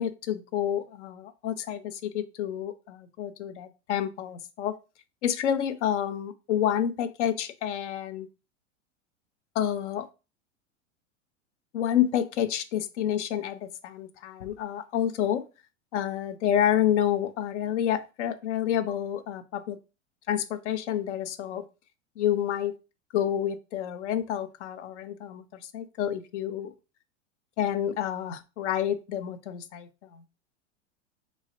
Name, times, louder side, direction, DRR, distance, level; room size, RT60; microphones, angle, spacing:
voice 1, 0.0-4.8 5.2-8.3 9.6-10.1 11.7-15.4 15.9-19.8 20.3-21.6 22.2-22.7 23.1-26.7 27.6-30.2, left 10 dB, 70° left, 11 dB, 0.5 m, -29 dB
3.0 x 2.3 x 2.7 m, 0.30 s
hypercardioid pair, 95°, 37 cm